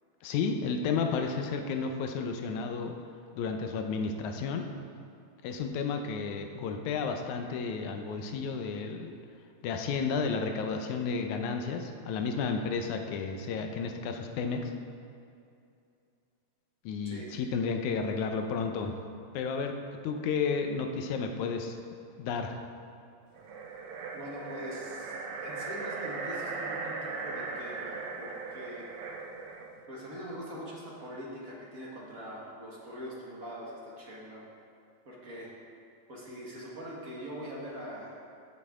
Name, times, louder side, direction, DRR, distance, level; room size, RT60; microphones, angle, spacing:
voice 1, 0.2-3.0 3.4-4.6 5.4-9.2 9.6-14.7 16.9-18.9 19.3-19.7 20.0-21.8 22.2-22.6, left 5 dB, 90° left, 5 dB, 2.2 m, -32 dB
sound 1, 23.3-29.8, right 4 dB, 80° right, 1.3 m, -38 dB
voice 2, 24.1-25.2 25.4-28.9 29.9-34.4 35.0-35.5 36.1-38.2, equal, 40° right, -4 dB, 1.4 m, -42 dB
15.0 x 6.6 x 3.6 m, 2.5 s
omnidirectional pair, 3.3 m